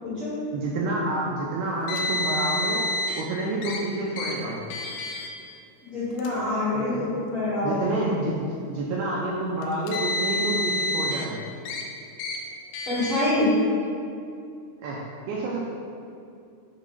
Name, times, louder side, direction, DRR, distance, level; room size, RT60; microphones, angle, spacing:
voice 1, 0.0-0.3 5.8-8.1 12.9-13.5, left 2 dB, 65° left, -13 dB, 1.3 m, -26 dB
voice 2, 0.5-2.8 3.2-4.7 6.7-7.1 7.6-11.5 14.8-15.7, right 2 dB, 85° right, -4 dB, 2.3 m, -29 dB
Car, 1.9-3.2 3.6-3.8 4.2-4.3 4.7-5.3 6.1-6.3 7.2-7.3 9.6-11.3 11.7-11.8 12.2-12.4 12.7-13.3, left 2 dB, 85° left, 2.1 m, -29 dB
6.7 x 3.1 x 5.3 m, 2.5 s
omnidirectional pair, 5.0 m